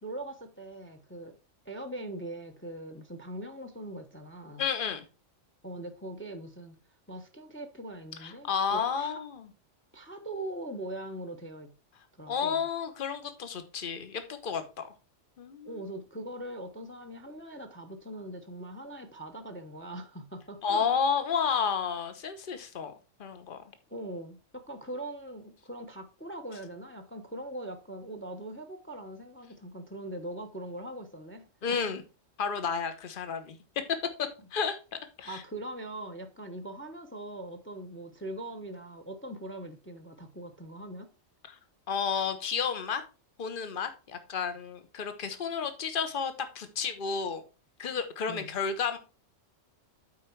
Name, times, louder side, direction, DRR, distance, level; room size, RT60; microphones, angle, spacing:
voice 1, 0.0-1.4 1.6-4.6 5.6-6.7 7.1-9.2 9.9-11.7 12.2-12.6 15.6-20.8 23.9-31.8 35.2-41.1 48.3-48.5, right 1 dB, 10° left, 0.8 m, -41 dB
voice 2, 4.6-5.0 8.2-9.5 12.3-14.9 15.4-15.8 20.6-22.9 23.2-23.6 31.6-32.0 32.4-33.6 34.2-34.8 35.2-35.4 41.5-41.6 41.9-43.0 43.4-47.4 47.8-49.0, left 6 dB, 45° left, 1.1 m, -31 dB
8.7 x 4.6 x 4.5 m
omnidirectional pair, 1.3 m